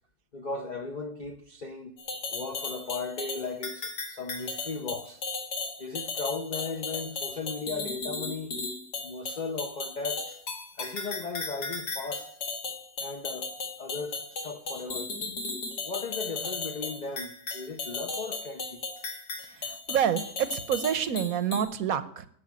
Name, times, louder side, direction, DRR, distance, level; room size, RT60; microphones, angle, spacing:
voice 1, 0.3-2.0 2.3-5.2 5.8-8.6 9.0-10.4 10.8-12.3 13.0-13.5 13.8-15.1 15.8-18.8, left 4 dB, 50° left, 0.5 m, -36 dB
sound 1, 2.0-21.6, left 3 dB, 75° left, 2.5 m, -36 dB
voice 2, 19.6-22.3, right 9 dB, 65° right, 1.1 m, -28 dB
11.0 x 6.6 x 8.4 m
omnidirectional pair, 1.8 m